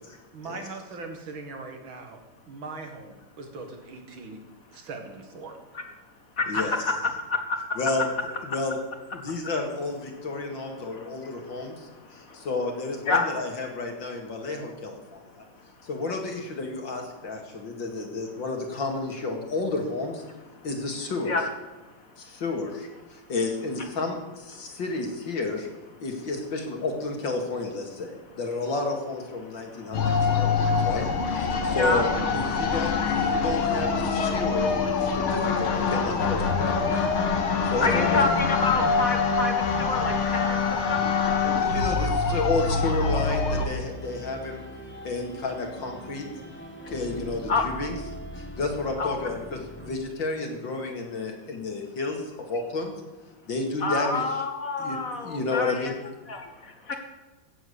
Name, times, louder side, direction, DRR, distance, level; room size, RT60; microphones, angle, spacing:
voice 1, 0.3-2.2 2.5-4.4 4.7-5.6 6.5-6.8, right 3 dB, 70° right, 4 dB, 2.6 m, -40 dB
voice 2, 6.4-7.4 13.1-13.2 21.3-21.4 31.8-32.0 37.8-39.5 39.8-40.4 40.7-41.0 41.4-41.7 47.5-47.6 49.0-49.1 53.8-55.9 56.3-56.5 56.9-57.0, left 3 dB, 45° left, 4 dB, 1.6 m, -27 dB
voice 3, 7.8-8.1 8.4-8.8 9.1-15.4 15.8-20.2 20.6-21.4 22.2-25.7 26.0-36.9 37.6-38.2 41.6-44.6 45.0-46.2 46.9-48.0 48.4-52.9 53.5-54.4 54.8-56.0, left 3 dB, 65° left, 2 dB, 2.8 m, -31 dB
sound 1, 29.9-43.7, left 5 dB, 85° left, 2.4 m, -25 dB
sound 2, 36.1-50.0, equal, 5° left, 1.3 m, -42 dB
15.5 x 7.4 x 8.4 m, 1.1 s
omnidirectional pair, 2.3 m